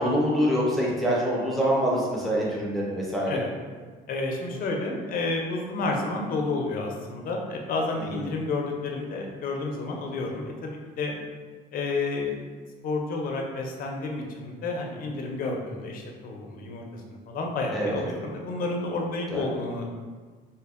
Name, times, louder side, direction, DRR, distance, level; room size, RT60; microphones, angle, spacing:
voice 1, 0.0-3.4 17.7-18.0 19.3-19.4, equal, ahead, -6 dB, 0.6 m, -25 dB
voice 2, 4.1-11.2 11.7-12.4 12.8-20.1, left 3 dB, 55° left, 1 dB, 0.5 m, -30 dB
2.7 x 2.5 x 2.4 m, 1.5 s
cardioid pair, 110°, 17 cm